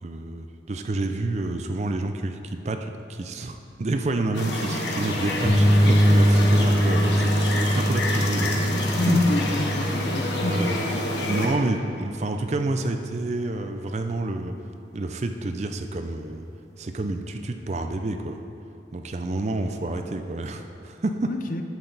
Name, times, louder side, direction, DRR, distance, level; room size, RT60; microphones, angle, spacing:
voice 1, 0.0-9.2 10.4-10.8 11.2-14.5 14.9-16.5 16.8-18.4 18.9-21.3, right 2 dB, 40° right, 6 dB, 0.4 m, -29 dB
sound 1, 4.3-11.5, left 1 dB, 75° left, 1.3 m, -28 dB
sound 2, 5.4-13.2, equal, 15° left, 0.8 m, -23 dB
voice 2, 8.2-10.8 21.2-21.6, left 2 dB, 45° left, 6 dB, 0.5 m, -28 dB
10.5 x 7.8 x 4.0 m, 2.8 s
head